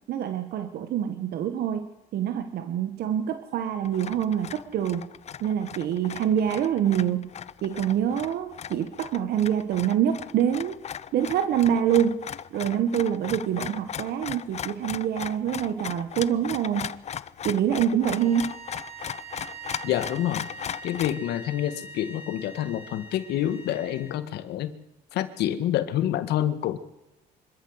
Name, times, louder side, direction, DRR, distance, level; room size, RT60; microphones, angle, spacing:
voice 1, 0.1-1.9 2.1-5.1 5.4-7.3 7.6-10.7 11.1-12.2 12.5-16.9 17.4-18.5, right 9 dB, 70° right, 9 dB, 1.5 m, -25 dB
sound 1, 3.8-21.2, left 9 dB, 40° left, 0.7 m, -37 dB
sound 2, 18.0-24.1, right 3 dB, 35° right, 7.2 m, -43 dB
voice 2, 19.8-20.5 20.8-24.7 25.1-26.8, left 11 dB, 75° left, 12 dB, 1.7 m, -27 dB
25.0 x 13.5 x 8.1 m, 0.93 s
cardioid pair, 110°, 17 cm